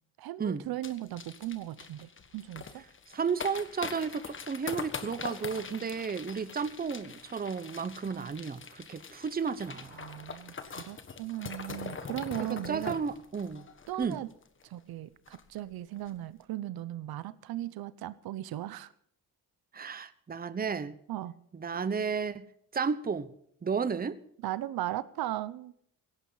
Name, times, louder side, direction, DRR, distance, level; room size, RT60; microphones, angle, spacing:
voice 1, 0.2-2.8 8.1-8.3 9.9-12.9 13.9-14.3 14.6-18.9 21.1-21.4 24.4-25.7, right 14 dB, 80° right, 0.8 m, -37 dB
sound 1, 0.8-14.6 14.9-15.0 15.3-15.6 15.9-16.1, left 5 dB, 35° left, 1.5 m, -43 dB
voice 2, 3.1-10.0 12.4-13.7 14.0-14.2 19.7-21.0 21.5-22.5 22.7-23.3 23.6-24.2, right 5 dB, 25° right, 0.9 m, -33 dB
17.5 x 15.5 x 4.0 m
cardioid pair, 115°, 36 cm